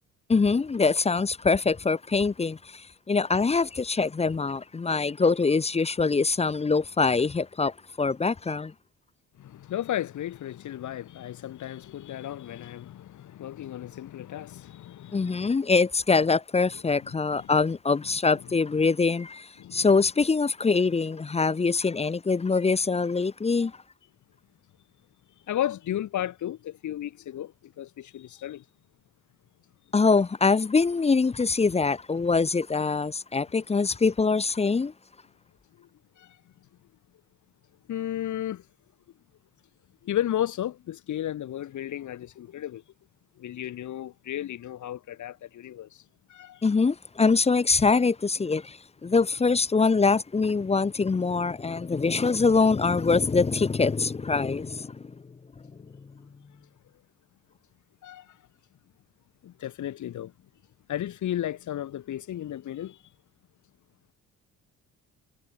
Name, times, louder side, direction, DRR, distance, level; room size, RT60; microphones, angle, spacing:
voice 1, 0.3-8.7 15.1-23.7 29.9-34.9 46.6-55.1, left 4 dB, 20° left, 0.7 m, -24 dB
voice 2, 9.4-15.5 17.3-17.5 19.6-19.9 25.5-28.6 35.8-35.9 36.2-36.4 37.9-38.6 40.0-42.8 43.4-46.0 46.3-46.6 58.0-58.4 59.4-60.3 60.9-63.0, left 12 dB, 75° left, 6.2 m, -34 dB
cardioid pair, 90°, 30 cm